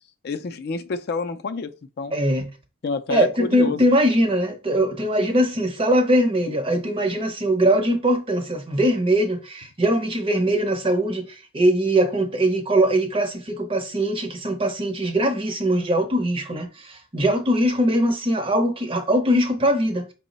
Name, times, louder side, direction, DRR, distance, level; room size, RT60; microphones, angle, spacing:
voice 1, 0.2-2.1 2.8-3.9, left 4 dB, 45° left, 0.3 m, -29 dB
voice 2, 2.1-2.5 3.1-20.1, right 1 dB, 25° right, 0.6 m, -21 dB
5.3 x 2.0 x 3.9 m
head